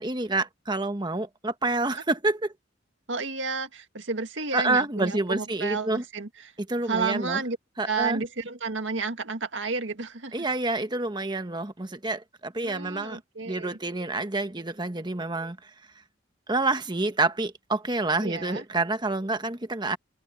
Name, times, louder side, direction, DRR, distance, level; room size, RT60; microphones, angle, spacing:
voice 1, 0.0-2.5 4.5-6.0 6.7-7.4 7.8-8.2 10.3-13.2 13.5-15.7 16.5-20.0, right 2 dB, 25° right, 1.3 m, -28 dB
voice 2, 3.1-6.5 6.8-7.6 7.9-10.5 12.6-13.8 18.2-18.6, right 4 dB, 80° right, 2.0 m, -31 dB
head